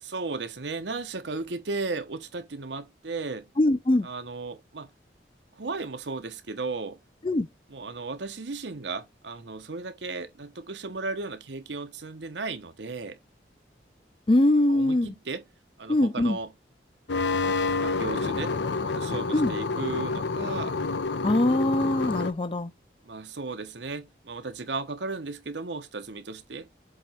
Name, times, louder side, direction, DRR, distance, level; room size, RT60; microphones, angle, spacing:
voice 1, 0.0-3.5 4.0-4.9 5.5-7.0 7.7-13.2 14.7-15.4 15.8-16.5 17.7-18.6 18.9-20.7 23.0-26.7, right 3 dB, 85° right, 1.0 m, -35 dB
voice 2, 3.6-4.1 7.2-7.5 14.3-15.1 15.9-16.4 19.3-19.5 21.2-22.7, left 1 dB, 30° left, 0.4 m, -22 dB
sound 1, 17.1-22.3, left 3 dB, 85° left, 0.7 m, -28 dB
7.7 x 3.0 x 4.3 m
head